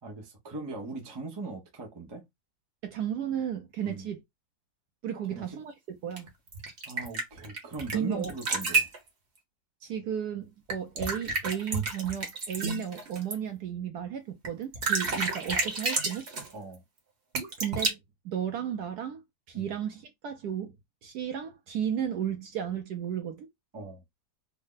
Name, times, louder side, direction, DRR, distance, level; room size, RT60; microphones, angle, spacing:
voice 1, 0.0-2.2 3.8-4.1 5.3-5.6 6.8-8.9 16.5-16.8 19.5-19.7 23.7-24.0, right 3 dB, 25° right, 0.5 m, -39 dB
voice 2, 2.8-4.2 5.0-6.3 7.9-8.3 9.8-16.2 17.6-18.0 18.2-19.2 19.5-20.7 21.0-23.5, right 9 dB, 70° right, 1.0 m, -34 dB
sound 1, 6.2-8.0 8.2-9.0 10.7-13.3 14.4-14.5 14.7-16.5 17.3-17.9, right 3 dB, 45° right, 1.1 m, -30 dB
3.5 x 2.1 x 3.8 m
omnidirectional pair, 2.0 m